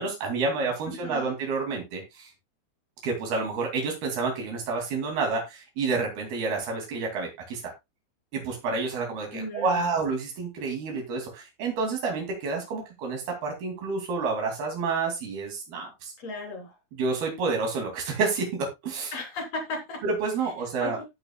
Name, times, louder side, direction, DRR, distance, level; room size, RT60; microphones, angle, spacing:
voice 1, 0.0-2.3 3.0-7.7 8.3-16.1 17.0-19.1 20.0-21.0, right 4 dB, 90° right, 1 dB, 4.6 m, -29 dB
voice 2, 0.9-1.3 9.3-9.9 16.2-16.7 19.1-20.0 20.8-21.1, left 2 dB, 45° left, 1 dB, 4.6 m, -35 dB
17.0 x 5.9 x 2.3 m, 0.22 s
omnidirectional pair, 4.3 m